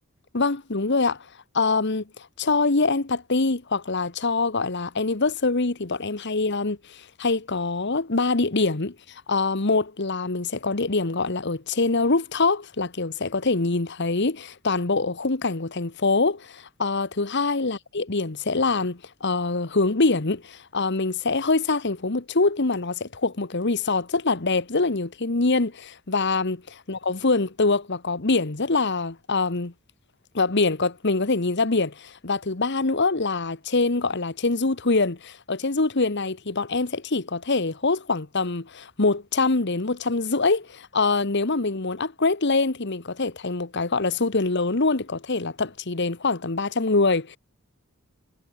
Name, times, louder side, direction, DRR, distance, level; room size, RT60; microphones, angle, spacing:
voice 1, 0.3-1.3 1.5-29.7 30.3-47.4, left 3 dB, 55° left, 1.3 m, -24 dB
head